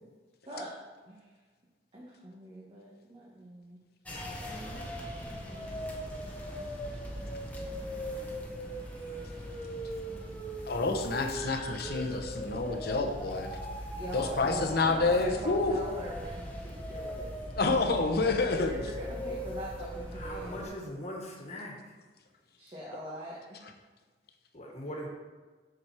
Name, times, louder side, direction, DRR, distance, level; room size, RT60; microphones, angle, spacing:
voice 1, 1.9-3.8 4.4-7.0 7.6-8.1 10.1-10.3 13.9-17.3 17.6-18.1 18.6-20.6 22.6-23.7, equal, 30° right, -5 dB, 1.4 m, -43 dB
sound 1, 4.1-20.7, equal, 10° left, 1.3 m, -39 dB
voice 2, 10.7-13.6 14.1-15.7 17.5-18.8, left 3 dB, 60° left, 4 dB, 0.9 m, -28 dB
voice 3, 20.1-21.8 24.5-25.1, equal, 40° left, -1 dB, 1.7 m, -40 dB
7.4 x 6.2 x 4.8 m, 1.4 s
head